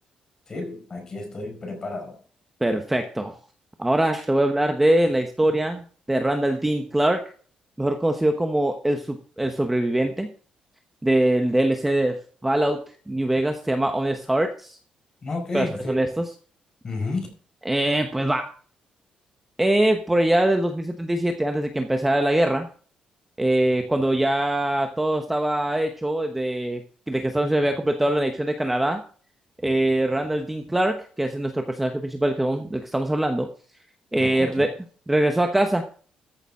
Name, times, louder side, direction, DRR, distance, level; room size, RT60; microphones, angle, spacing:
voice 1, 0.5-2.2 15.2-16.0 16.8-17.3 34.2-34.7, left 3 dB, 25° left, 2 dB, 4.6 m, -31 dB
voice 2, 2.6-3.4 3.8-7.2 7.8-10.3 11.0-12.2 12.4-12.8 13.1-14.8 15.5-16.2 17.7-18.5 19.6-22.7 23.4-26.8 27.1-29.0 29.6-33.5 34.1-34.7 35.1-35.8, right 1 dB, 5° right, 5 dB, 1.0 m, -23 dB
14.0 x 7.0 x 5.4 m, 0.42 s
cardioid pair, 175°, 2 cm